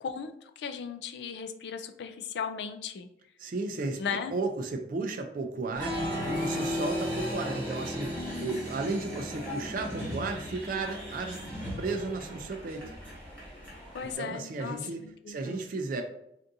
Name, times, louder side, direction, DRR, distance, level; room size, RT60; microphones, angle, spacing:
voice 1, 0.0-3.1 4.0-4.4 8.2-8.7 13.9-15.7, left 6 dB, 65° left, 8 dB, 0.3 m, -37 dB
voice 2, 3.4-6.0 6.3-11.4 11.8-12.8 14.0-15.0 15.3-16.0, right 3 dB, 50° right, 4 dB, 0.3 m, -34 dB
Applause, 5.8-14.1, equal, 10° left, 1.2 m, -35 dB
3.5 x 2.5 x 2.6 m, 0.78 s
head